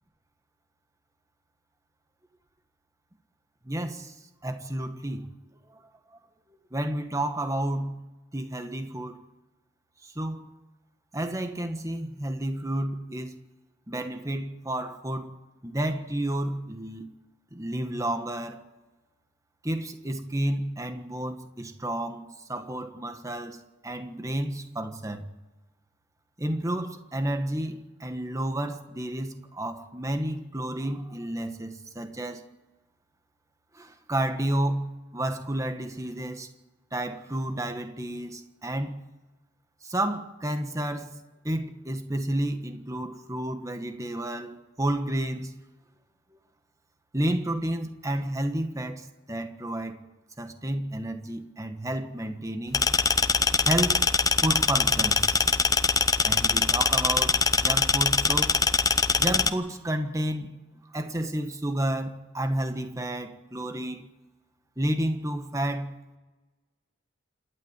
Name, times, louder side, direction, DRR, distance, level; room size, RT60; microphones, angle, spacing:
voice 1, 3.6-4.1 4.4-5.3 6.7-8.0 8.3-9.2 10.1-10.5 11.1-13.4 13.9-15.3 15.6-17.1 17.5-18.6 19.6-25.3 26.4-32.4 33.7-36.5 36.9-38.9 39.8-41.1 41.4-45.5 47.1-50.0 50.4-52.8 53.6-54.0 54.4-55.4 56.2-58.6 59.2-60.5 60.9-64.1 64.8-65.9, right 1 dB, 15° right, 1.5 m, -31 dB
sound 1, 52.7-59.5, left 4 dB, 20° left, 0.7 m, -23 dB
27.5 x 11.5 x 9.0 m
head